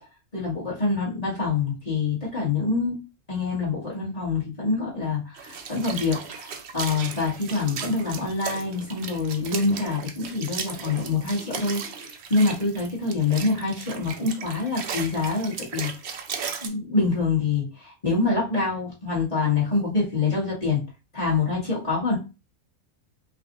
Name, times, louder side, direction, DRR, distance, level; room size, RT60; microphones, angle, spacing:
voice 1, 0.3-3.0 3.3-15.9 16.6-20.8 21.1-22.2, left 4 dB, 25° left, -7 dB, 1.8 m, -26 dB
sound 1, 5.3-16.7, right 6 dB, 60° right, 0.7 m, -36 dB
5.5 x 2.5 x 2.6 m, 0.29 s
omnidirectional pair, 1.5 m